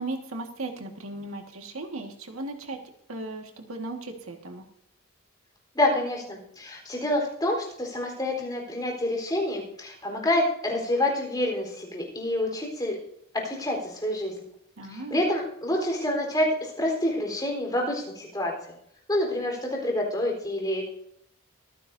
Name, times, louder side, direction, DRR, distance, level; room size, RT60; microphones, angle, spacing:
voice 1, 0.0-2.8 3.1-4.6 14.8-15.2, right 2 dB, 90° right, 3 dB, 1.9 m, -36 dB
voice 2, 5.7-13.0 13.3-14.3 14.9-18.7 19.1-20.8, left 1 dB, 20° left, 0 dB, 4.2 m, -27 dB
24.0 x 10.0 x 2.7 m, 0.71 s
head